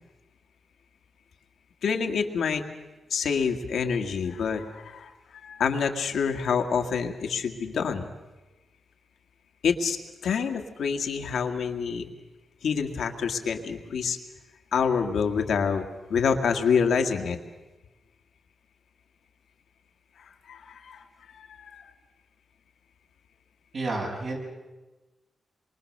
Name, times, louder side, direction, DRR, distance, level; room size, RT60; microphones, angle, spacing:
voice 1, 1.8-2.6 3.1-5.1 5.4-8.1 9.6-10.0 10.2-12.1 12.6-14.2 14.7-15.8 16.1-17.4 20.2-21.9, left 6 dB, 85° left, 5 dB, 2.0 m, -27 dB
voice 2, 23.7-24.4, right 2 dB, 65° right, -2 dB, 7.7 m, -30 dB
27.0 x 23.5 x 6.7 m, 1.1 s
cardioid pair, 65°, 0 cm